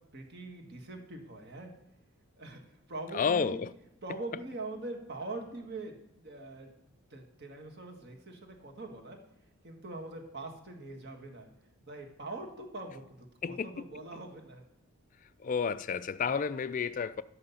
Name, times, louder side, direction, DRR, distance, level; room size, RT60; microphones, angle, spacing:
voice 1, 0.1-1.7 2.4-3.6 4.0-6.7 7.1-9.2 9.6-11.5 11.9-14.6, right 2 dB, 50° right, 1.7 m, -43 dB
voice 2, 3.1-3.7 13.4-13.7 15.4-17.2, left 6 dB, 35° left, 0.3 m, -31 dB
11.5 x 7.7 x 5.6 m
head